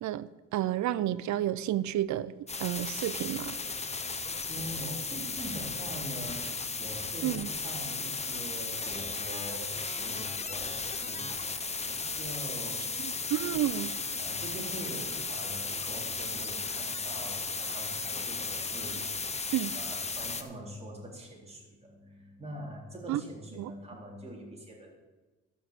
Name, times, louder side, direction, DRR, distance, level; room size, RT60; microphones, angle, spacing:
voice 1, 0.0-2.3 2.6-3.6 7.2-7.5 13.0-13.9 19.5-19.7 23.1-23.2 23.6-23.7, right 12 dB, 70° right, 18 dB, 0.6 m, -31 dB
sound 1, 2.5-20.4, left 4 dB, 20° left, 1.0 m, -35 dB
voice 2, 4.5-6.4 6.8-13.1 13.4-13.5 14.2-19.0 19.7-24.9, right 1 dB, 20° right, -2 dB, 3.8 m, -44 dB
12.5 x 6.1 x 8.1 m, 1.2 s
cardioid pair, 90°, 30 cm